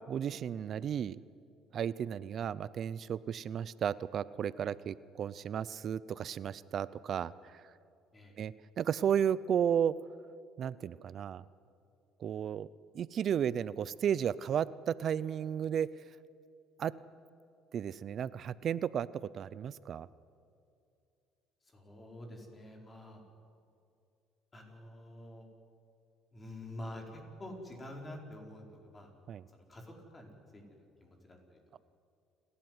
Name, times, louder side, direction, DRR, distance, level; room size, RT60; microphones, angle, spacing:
voice 1, 0.1-1.2 1.7-7.6 8.4-9.9 10.6-11.4 12.2-12.7 12.9-15.9 16.8-16.9 17.7-19.1 19.3-20.1 29.3-29.4, right 8 dB, 50° right, 19 dB, 0.6 m, -33 dB
voice 2, 21.6-23.2 24.5-25.5 26.3-29.1 29.5-31.8, left 1 dB, 25° left, 2 dB, 4.7 m, -48 dB
29.0 x 12.5 x 9.6 m, 2.5 s
cardioid pair, 100°, 0 cm